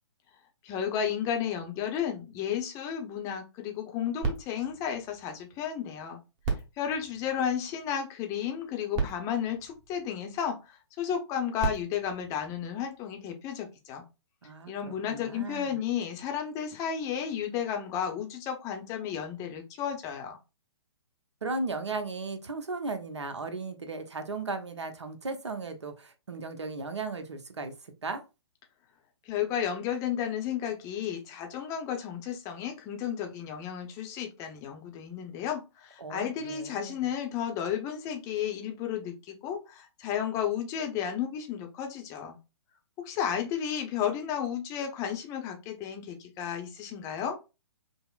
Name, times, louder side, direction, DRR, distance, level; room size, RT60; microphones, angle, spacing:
voice 1, 0.6-6.2 6.8-14.0 14.7-20.4 29.3-42.4 43.0-47.4, left 8 dB, 20° left, 0.6 m, -33 dB
sound 1, 4.2-5.9 6.4-8.0 8.7-8.8 8.9-10.5 11.3-13.2 13.9-14.0, right 4 dB, 25° right, 0.9 m, -36 dB
voice 2, 14.4-15.8 21.4-28.2 36.0-37.1, right 3 dB, 70° right, 0.8 m, -36 dB
5.3 x 2.0 x 2.3 m
figure-of-eight pair, 125°, 15 cm